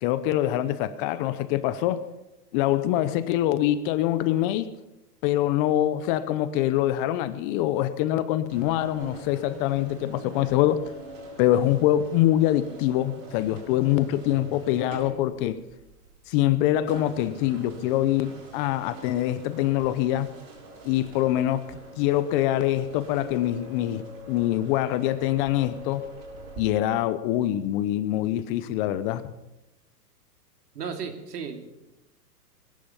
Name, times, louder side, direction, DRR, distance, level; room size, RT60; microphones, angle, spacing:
voice 1, 0.0-2.1 2.5-4.7 5.2-10.8 11.4-15.6 16.3-20.3 20.8-26.0 26.6-29.2, left 13 dB, 35° left, 14 dB, 0.8 m, -24 dB
sound 1, 8.5-26.6, right 1 dB, 40° right, 6.6 m, -44 dB
voice 2, 30.7-31.7, right 6 dB, 75° right, 5 dB, 2.9 m, -34 dB
20.5 x 11.0 x 5.6 m, 0.97 s
hypercardioid pair, 135°, 48 cm